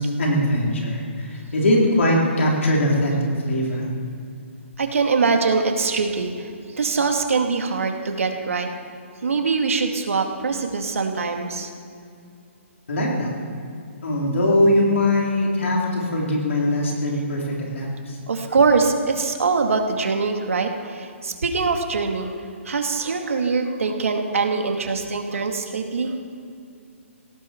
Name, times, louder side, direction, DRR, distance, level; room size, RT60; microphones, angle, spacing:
voice 1, 0.0-3.8 12.9-13.3 14.0-18.2, left 1 dB, 70° left, -3 dB, 4.1 m, -21 dB
voice 2, 4.8-6.5 6.7-8.7 9.2-11.7 18.3-22.4 22.6-26.2, right 4 dB, 80° right, 4 dB, 2.2 m, -23 dB
17.5 x 17.0 x 4.6 m, 2.4 s
hypercardioid pair, 175°, 7 cm